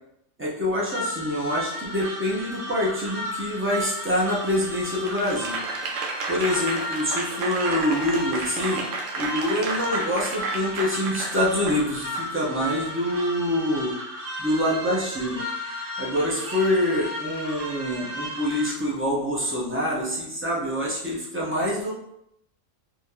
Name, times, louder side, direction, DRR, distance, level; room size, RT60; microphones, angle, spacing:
voice 1, 0.4-5.6 6.3-8.9 9.2-13.9 14.4-15.4 16.0-21.9, left 1 dB, 15° right, -5 dB, 0.4 m, -26 dB
sound 1, 0.9-18.7, left 1 dB, 55° right, 0.8 m, -34 dB
Applause / Crowd, 5.0-12.3, right 3 dB, 75° right, 0.9 m, -32 dB
2.7 x 2.4 x 3.7 m, 0.77 s
omnidirectional pair, 1.3 m